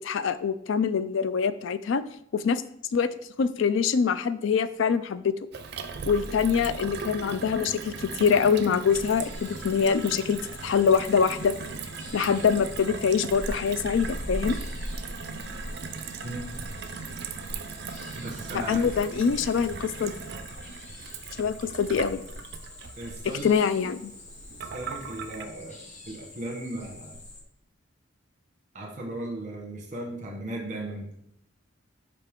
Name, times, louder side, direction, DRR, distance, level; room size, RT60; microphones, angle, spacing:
voice 1, 0.0-2.0 2.3-2.6 2.9-3.1 3.4-5.3 6.1-11.6 12.1-14.6 18.5-20.1 21.4-22.2 23.4-24.1, left 6 dB, 65° left, 13 dB, 0.4 m, -24 dB
Gurgling / Water tap faucet / Sink (filling or washing), 5.5-25.4, right 5 dB, 55° right, 0.4 m, -39 dB
sound 1, 8.9-27.4, left 1 dB, 35° left, 0.9 m, -42 dB
voice 2, 18.1-18.8 23.0-23.4 24.7-25.8 26.1-27.2 28.7-31.1, right 1 dB, 40° right, 0 dB, 1.3 m, -36 dB
5.6 x 5.0 x 3.6 m, 0.72 s
head